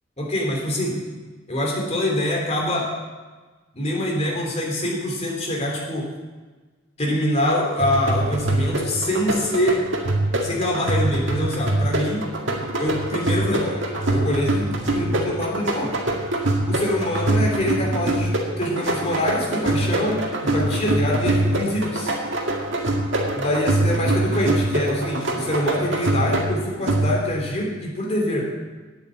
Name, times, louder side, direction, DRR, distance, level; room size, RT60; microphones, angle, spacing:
voice 1, 0.2-1.0 1.5-2.9 3.7-6.1 7.0-9.8 10.4-12.3 12.8-15.9 16.7-22.1 23.3-28.5, left 1 dB, 35° left, -2 dB, 3.1 m, -25 dB
sound 1, 7.8-27.5, right 1 dB, 70° right, 2.0 m, -24 dB
9.4 x 8.4 x 8.0 m, 1.3 s
head